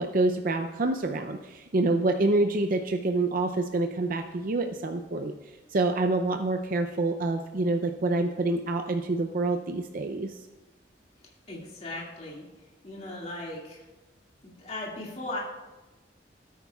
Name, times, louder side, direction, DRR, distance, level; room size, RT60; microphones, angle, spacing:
voice 1, 0.0-5.3 5.7-10.3, right 2 dB, 50° right, 5 dB, 0.5 m, -27 dB
voice 2, 11.5-12.4 12.8-13.8 14.4-15.4, left 2 dB, 40° left, -4 dB, 2.2 m, -37 dB
17.5 x 9.3 x 2.4 m, 1.1 s
head